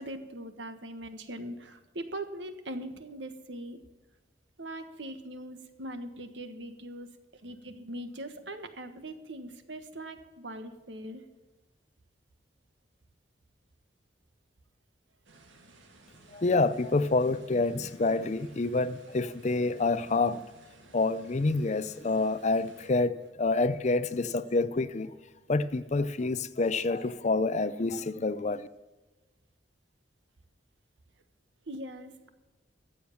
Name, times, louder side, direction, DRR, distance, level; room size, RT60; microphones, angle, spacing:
voice 1, 0.0-3.8 4.6-11.2 31.7-32.3, right 1 dB, 70° right, 1.4 m, -41 dB
sound 1, 15.2-22.9, right 2 dB, 85° right, 2.1 m, -56 dB
voice 2, 16.3-20.4 20.9-25.1 25.5-28.7, left 3 dB, 40° left, 0.5 m, -27 dB
14.5 x 8.0 x 7.1 m
head